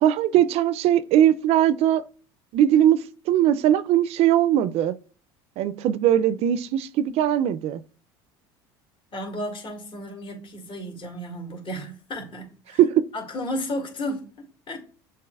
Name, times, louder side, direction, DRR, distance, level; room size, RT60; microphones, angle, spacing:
voice 1, 0.0-2.0 2.5-3.0 3.3-4.9 5.6-7.8 12.8-13.0, right 11 dB, 55° right, 0.4 m, -20 dB
voice 2, 9.1-12.8 13.1-14.8, equal, 45° left, 2.1 m, -33 dB
6.9 x 2.8 x 2.3 m
supercardioid pair, 90°, 13 cm